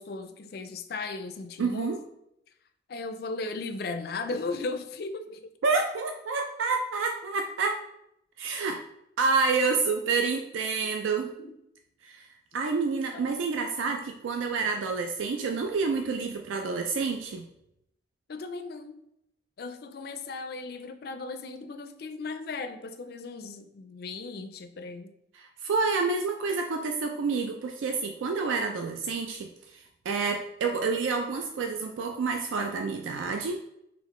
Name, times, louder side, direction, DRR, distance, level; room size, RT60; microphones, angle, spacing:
voice 1, 0.0-2.0 2.9-5.5 11.4-11.5 13.1-13.3 18.3-19.0 19.6-25.1, left 3 dB, 55° left, 0.4 m, -36 dB
voice 2, 1.6-2.0 5.6-7.8 8.4-8.8 9.2-11.3 12.0-12.3 12.5-17.5 25.3-33.6, right 4 dB, 85° right, 0.4 m, -28 dB
3.6 x 2.9 x 3.6 m
head